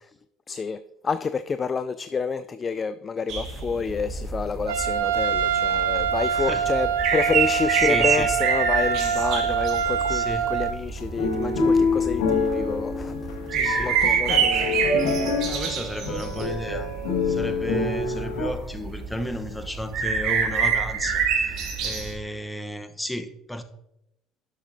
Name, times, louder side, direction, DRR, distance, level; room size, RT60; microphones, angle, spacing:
voice 1, 0.5-13.2 13.7-14.8, left 5 dB, 35° left, 0.4 m, -29 dB
sound 1, 3.3-22.1, right 6 dB, 60° right, 2.3 m, -27 dB
Trumpet, 4.7-10.7, right 7 dB, 85° right, 0.8 m, -25 dB
voice 2, 6.3-6.7 7.8-8.4 10.1-10.5 13.5-14.6 15.0-16.9 17.2-23.6, equal, 5° left, 1.0 m, -34 dB
sound 2, 11.0-18.5, left 3 dB, 80° left, 1.7 m, -26 dB
11.0 x 7.3 x 2.7 m
hypercardioid pair, 65°, 0 cm